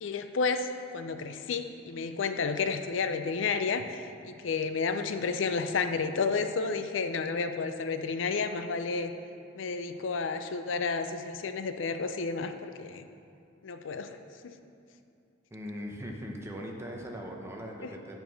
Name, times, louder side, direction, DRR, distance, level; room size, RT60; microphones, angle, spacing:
voice 1, 0.0-9.1 9.5-13.0 13.6-14.2 14.4-14.5 17.8-17.9, left 4 dB, 80° left, 9 dB, 0.5 m, -31 dB
voice 2, 15.5-18.2, equal, 15° right, 0 dB, 0.9 m, -40 dB
8.9 x 4.6 x 6.8 m, 2.6 s
head